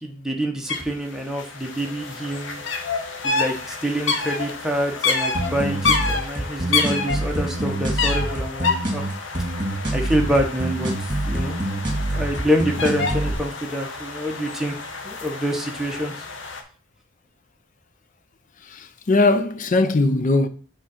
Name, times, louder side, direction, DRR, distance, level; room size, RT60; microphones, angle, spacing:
voice 1, 0.0-2.6 3.2-9.1 9.9-11.6 12.0-14.8 15.0-16.1, equal, 5° right, 1.0 m, -26 dB
sound 1, 0.7-0.8 1.1-16.6, left 4 dB, 65° left, 0.9 m, -28 dB
sound 2, 5.3-13.3, right 1 dB, 25° right, 2.0 m, -26 dB
voice 2, 18.7-20.5, left 2 dB, 40° left, 0.5 m, -20 dB
4.9 x 3.8 x 5.7 m
head